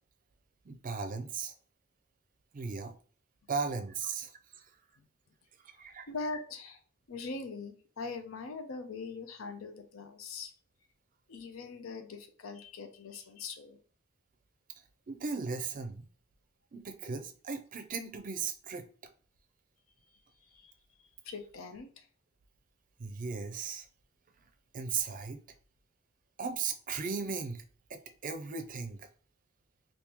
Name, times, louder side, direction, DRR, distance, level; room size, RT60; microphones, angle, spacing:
voice 1, 0.7-1.5 2.5-2.9 3.5-4.3 4.6-4.7 5.8-6.1 15.1-16.0 16.7-18.8 23.0-23.9 24.7-25.4 26.4-27.6 27.9-29.1, right 5 dB, 40° right, 0.5 m, -36 dB
voice 2, 6.1-6.8 7.1-10.5 11.3-13.8 20.4-20.7 21.2-22.1, left 4 dB, 85° left, 0.6 m, -42 dB
3.6 x 2.6 x 2.9 m
head